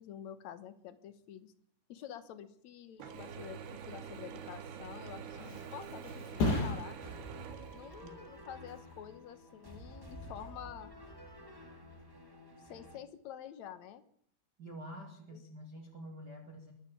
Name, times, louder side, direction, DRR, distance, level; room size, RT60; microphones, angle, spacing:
voice 1, 0.0-1.5 1.9-7.1 7.7-10.9 12.6-14.0 15.3-15.4, left 10 dB, 65° left, 12 dB, 1.9 m, -48 dB
Mechanisms / Drill, 3.0-8.5, right 7 dB, 75° right, 3.8 m, -46 dB
Thump thud, 4.8-12.3 12.7-13.1, left 2 dB, 80° left, 8.5 m, -40 dB
sound 1, 7.0-13.0, equal, 10° right, 1.7 m, -51 dB
voice 2, 14.6-16.7, equal, 30° right, 3 dB, 2.2 m, -47 dB
23.0 x 13.5 x 8.8 m, 0.62 s
omnidirectional pair, 4.8 m